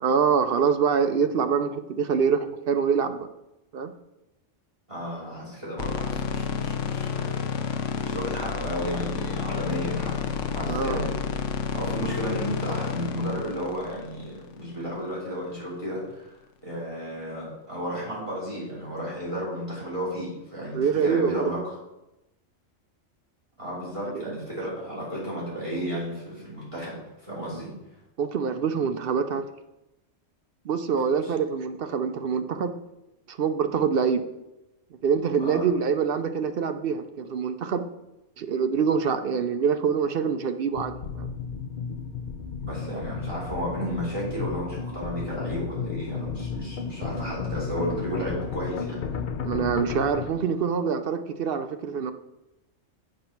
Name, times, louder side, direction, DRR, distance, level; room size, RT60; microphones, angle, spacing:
voice 1, 0.0-3.3 3.7-3.9 10.7-11.0 20.7-21.5 28.2-29.5 30.6-32.7 33.3-34.2 35.0-37.9 38.4-41.3 49.4-52.1, right 6 dB, 60° right, 9 dB, 0.6 m, -25 dB
voice 2, 4.9-7.3 8.0-11.1 11.7-21.8 23.6-27.7 31.2-31.3 35.4-35.6 42.6-49.0, equal, 25° right, -7 dB, 3.2 m, -33 dB
sound 1, 5.8-15.0, left 6 dB, 75° left, 1.0 m, -30 dB
sound 2, 40.7-50.3, left 6 dB, 55° left, 0.6 m, -33 dB
7.8 x 5.3 x 5.8 m, 0.94 s
omnidirectional pair, 1.3 m